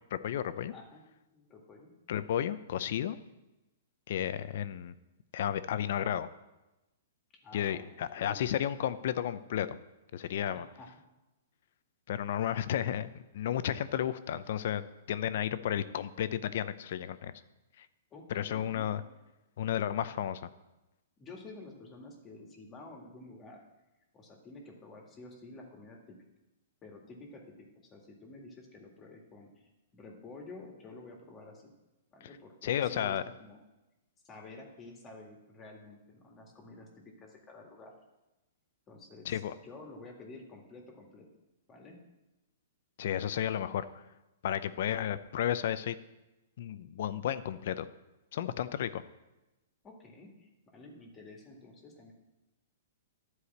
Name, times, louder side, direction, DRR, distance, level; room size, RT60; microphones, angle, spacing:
voice 1, 0.1-0.7 2.1-3.2 4.1-4.9 5.3-6.3 7.5-9.8 10.1-10.7 12.1-13.1 13.3-17.3 17.8-17.9 18.3-19.0 19.6-20.4 32.6-33.2 39.2-39.5 43.0-44.0 44.4-46.0 46.6-47.9 48.3-49.0, left 10 dB, 60° left, 13 dB, 0.6 m, -32 dB
voice 2, 0.7-1.0 1.3-1.9 7.4-7.8 8.2-8.4 10.5-10.9 18.1-18.9 21.2-23.6 24.1-26.2 26.8-27.7 27.9-29.5 29.9-31.7 32.1-33.6 34.2-36.9 37.2-37.9 38.9-41.3 41.7-42.0 49.8-52.1, left 2 dB, 20° left, 1 dB, 2.0 m, -50 dB
11.5 x 4.9 x 8.1 m, 1.0 s
hypercardioid pair, 150°, 0 cm